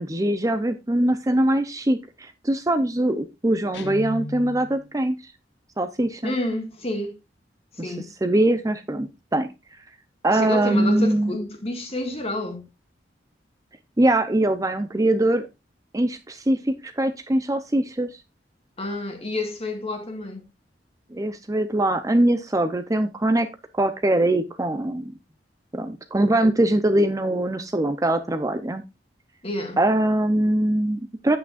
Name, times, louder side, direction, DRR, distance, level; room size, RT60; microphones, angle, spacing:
voice 1, 0.0-5.2 5.8-6.3 7.8-7.9 8.2-9.5 10.2-11.4 14.0-15.4 15.9-18.1 21.1-23.5 23.8-25.1 25.7-28.8 29.8-31.4, right 1 dB, 20° right, 0.6 m, -22 dB
Guitar, 3.7-4.9, left 2 dB, 75° left, 0.6 m, -35 dB
voice 2, 6.2-7.2 7.8-8.1 10.3-12.6 18.8-20.5 29.4-29.8, left 1 dB, 35° left, 1.9 m, -29 dB
9.6 x 8.5 x 2.5 m
head